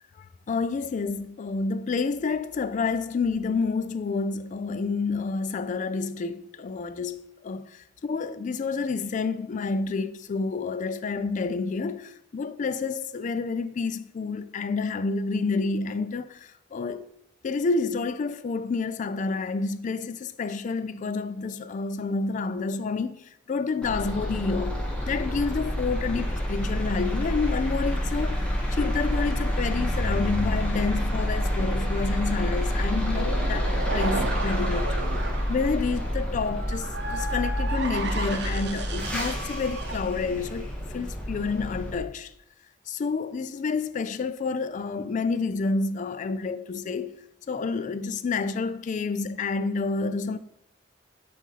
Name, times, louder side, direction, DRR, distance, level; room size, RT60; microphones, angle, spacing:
voice 1, 0.5-17.1 17.4-35.0 35.5-42.3 42.9-47.2 47.5-50.4, left 4 dB, 40° left, 0.3 m, -29 dB
sound 1, 23.8-42.0, equal, 5° left, 1.2 m, -28 dB
sound 2, 31.6-40.0, right 3 dB, 65° right, 0.7 m, -35 dB
4.9 x 4.0 x 5.7 m
head